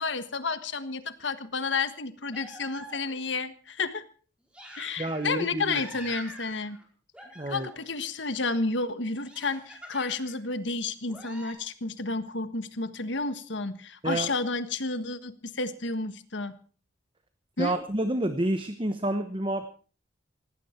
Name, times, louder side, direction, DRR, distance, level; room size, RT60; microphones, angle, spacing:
voice 1, 0.0-4.0 4.8-6.8 7.5-16.6 17.6-17.8, left 3 dB, 70° left, 11 dB, 1.5 m, -31 dB
sound 1, 2.3-3.3 4.5-5.4 5.7-6.8 7.1-7.9 9.2-10.4 11.1-11.5, equal, 5° right, 4.4 m, -45 dB
voice 2, 5.0-5.8 7.4-7.7 14.0-14.3 17.6-19.7, right 1 dB, 25° right, 9 dB, 1.0 m, -29 dB
19.0 x 16.5 x 4.5 m, 0.41 s
head